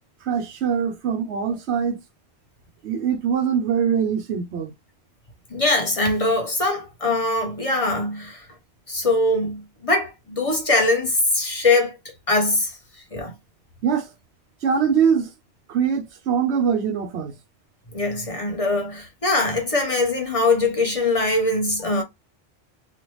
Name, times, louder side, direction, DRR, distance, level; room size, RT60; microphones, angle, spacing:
voice 1, 0.2-2.0 2.8-4.7 13.8-14.1 14.6-15.3 15.7-17.4, right 7 dB, 90° right, 1.0 m, -23 dB
voice 2, 5.5-8.4 8.9-12.0 12.3-12.7 13.1-13.3 17.9-22.0, left 2 dB, 35° left, 0.8 m, -22 dB
3.4 x 2.3 x 3.1 m
omnidirectional pair, 1.1 m